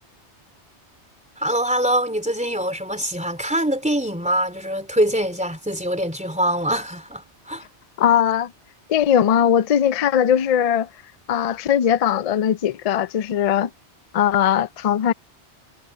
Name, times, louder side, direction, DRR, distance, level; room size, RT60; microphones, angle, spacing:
voice 1, 1.4-7.6, right 1 dB, 5° right, 3.3 m, -24 dB
voice 2, 8.0-8.5 8.9-10.9 11.3-13.7 14.1-15.1, left 9 dB, 65° left, 0.3 m, -19 dB
omnidirectional pair, 1.2 m